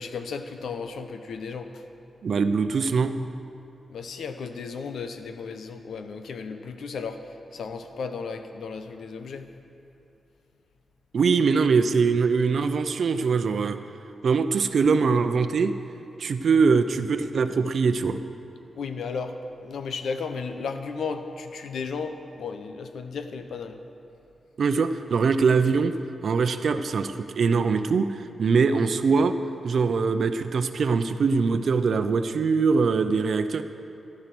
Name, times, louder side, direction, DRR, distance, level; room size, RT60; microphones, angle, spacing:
voice 1, 0.0-1.8 3.9-9.5 18.7-23.8, left 5 dB, 85° left, 8 dB, 0.9 m, -34 dB
voice 2, 2.2-3.1 11.1-13.8 14.2-15.7 16.2-18.2 24.6-25.9 26.2-29.3 29.6-33.6, right 5 dB, 65° right, 9 dB, 0.7 m, -22 dB
15.0 x 12.0 x 6.1 m, 2.8 s
wide cardioid pair, 110°, 0 cm